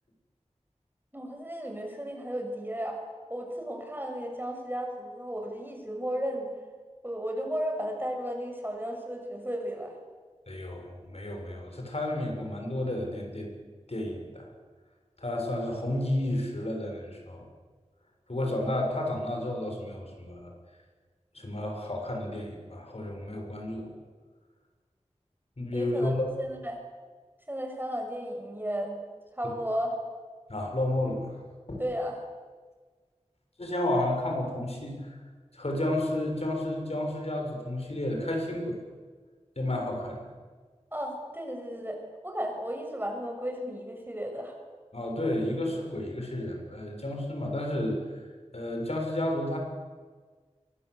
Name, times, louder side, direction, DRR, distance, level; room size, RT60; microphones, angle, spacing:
voice 1, 1.1-3.0 3.3-6.5 7.0-9.9 25.7-26.8 27.5-29.0 29.3-30.0 31.8-32.2 40.9-42.0 42.2-44.5, equal, 15° right, 2 dB, 7.0 m, -34 dB
voice 2, 10.5-13.5 13.9-14.5 15.2-17.5 18.3-20.5 21.3-23.9 25.6-26.3 29.4-29.5 30.5-31.4 31.7-31.8 33.6-35.2 35.5-38.8 39.6-40.3 44.9-48.2 48.5-49.6, left 1 dB, 60° left, 2 dB, 7.3 m, -31 dB
27.5 x 24.0 x 8.4 m, 1.5 s
wide cardioid pair, 55°, 12 cm